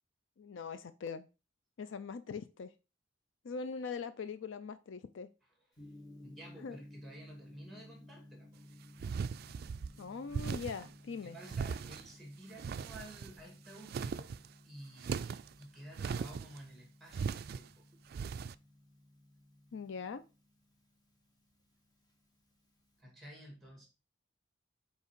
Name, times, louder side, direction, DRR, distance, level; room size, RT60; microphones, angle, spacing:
voice 1, 0.4-1.3 1.8-2.7 3.4-5.3 6.6-6.8 10.0-11.4 19.7-20.2, left 5 dB, 70° left, 0.4 m, -42 dB
Gong, 5.8-23.0, left 1 dB, 20° left, 1.4 m, -58 dB
voice 2, 6.2-8.6 11.2-14.4 14.6-17.9 23.0-23.9, right 1 dB, ahead, 2.5 m, -52 dB
sound 1, 9.0-9.9 10.3-10.9 11.4-12.1 12.6-13.4 13.8-14.5 15.0-15.5 15.9-16.6 17.1-17.6 18.1-18.5, right 6 dB, 50° right, 0.3 m, -38 dB
5.7 x 4.6 x 4.5 m
head